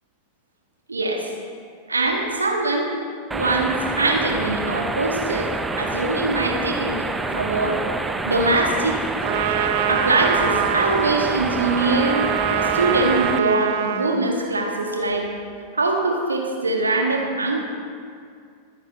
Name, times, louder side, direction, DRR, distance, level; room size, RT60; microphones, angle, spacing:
voice 1, 0.9-1.3 1.9-2.9 3.3-7.8 8.2-9.0 9.9-15.3 15.7-17.6, right 2 dB, 80° right, 1 dB, 1.7 m, -23 dB
sound 1, 3.3-13.4, right 3 dB, 10° right, 0.6 m, -27 dB
Trumpet, 9.2-14.2, right 10 dB, 55° right, 0.5 m, -24 dB
24.0 x 9.2 x 3.0 m, 2.2 s
figure-of-eight pair, 90°, 0 cm